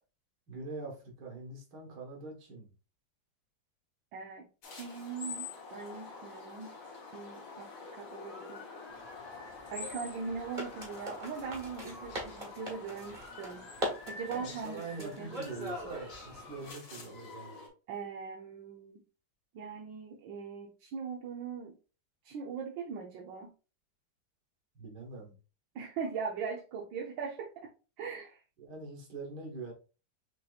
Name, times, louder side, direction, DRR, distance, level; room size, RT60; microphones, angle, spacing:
voice 1, 0.5-2.7 14.3-17.6 24.8-25.4 28.6-29.7, right 3 dB, 60° right, 0 dB, 2.0 m, -43 dB
voice 2, 4.1-6.8 7.1-8.7 9.7-15.3 17.9-19.0 19.5-21.8 22.2-23.5 25.7-27.7 28.0-28.4, right 5 dB, 80° right, 0 dB, 1.5 m, -40 dB
sound 1, 4.6-17.7, left 4 dB, 80° left, 2.2 m, -47 dB
sound 2, 8.9-16.7, equal, 30° right, 1.2 m, -43 dB
6.2 x 2.8 x 2.4 m, 0.33 s
omnidirectional pair, 2.0 m